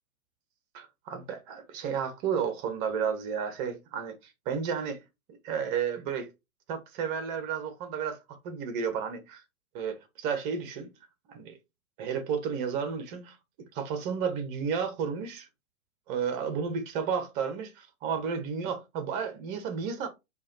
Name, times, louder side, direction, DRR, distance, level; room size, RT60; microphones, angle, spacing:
voice 1, 0.7-5.0 5.4-6.3 6.7-9.4 9.7-10.9 11.3-11.6 12.0-13.4 13.7-15.5 16.1-20.1, right 6 dB, 35° right, 1.2 m, -32 dB
4.7 x 2.6 x 4.2 m
figure-of-eight pair, 115°, 41 cm